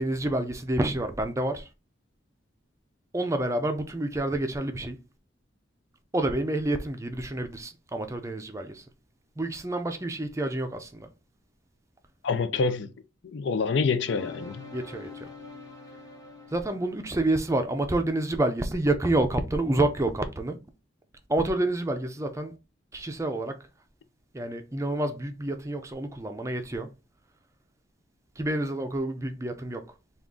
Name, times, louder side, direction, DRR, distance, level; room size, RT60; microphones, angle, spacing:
voice 1, 0.0-1.7 3.1-5.0 6.1-8.8 9.4-11.1 14.7-15.3 16.5-20.6 21.3-22.6 22.9-23.6 24.3-26.9 28.4-29.8, right 1 dB, 15° right, 0.4 m, -28 dB
voice 2, 12.2-12.9 13.2-14.7, left 4 dB, 65° left, 0.4 m, -26 dB
sound 1, 14.1-19.0, left 3 dB, 20° left, 0.9 m, -46 dB
3.6 x 2.4 x 3.7 m
head